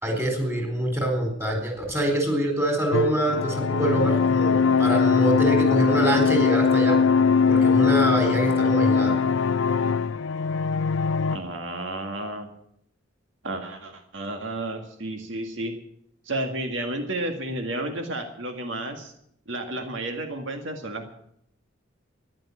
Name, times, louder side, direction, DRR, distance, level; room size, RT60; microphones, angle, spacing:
voice 1, 0.0-7.0 7.5-9.2, right 1 dB, 15° right, 3 dB, 4.2 m, -25 dB
sound 1, 2.9-11.4, left 5 dB, 70° left, 0.5 m, -21 dB
voice 2, 11.3-12.5 13.4-15.7 16.3-19.1 19.5-21.1, right 1 dB, 70° right, 5 dB, 1.9 m, -32 dB
14.5 x 11.0 x 8.6 m, 0.71 s
head